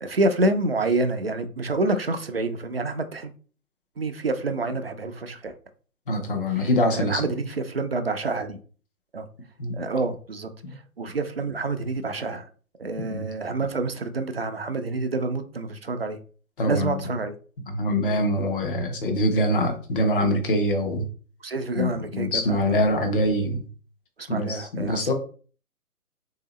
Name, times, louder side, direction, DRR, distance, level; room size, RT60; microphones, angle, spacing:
voice 1, 0.0-3.3 4.0-5.5 6.5-8.6 9.1-9.3 9.7-12.5 12.8-16.2 16.6-17.3 18.1-18.2 21.4-22.8 24.2-25.1, right 2 dB, 45° right, 0.4 m, -28 dB
voice 2, 6.1-7.3 9.6-9.8 10.6-10.7 13.0-13.2 16.6-17.0 17.7-21.1 21.7-23.6 24.3-25.1, left 1 dB, 35° left, 0.8 m, -24 dB
3.3 x 2.7 x 3.1 m
figure-of-eight pair, 135°, 44 cm